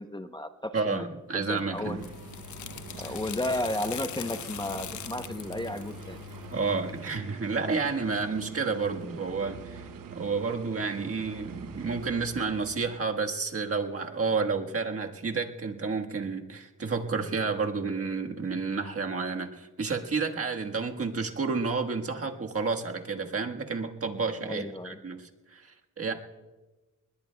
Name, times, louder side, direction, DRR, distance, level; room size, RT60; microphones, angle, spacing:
voice 1, 0.0-1.0 1.3-2.0 3.0-6.2 24.4-25.0, left 1 dB, 15° left, 7 dB, 0.7 m, -33 dB
voice 2, 0.7-2.0 3.1-3.2 6.5-26.1, right 4 dB, 45° right, 2 dB, 1.5 m, -30 dB
sound 1, 1.6-7.1, left 11 dB, 65° left, 0.6 m, -42 dB
sound 2, 1.8-13.1, right 6 dB, 90° right, 1.0 m, -45 dB
30.0 x 20.5 x 2.3 m, 1.2 s
cardioid pair, 95°, 32 cm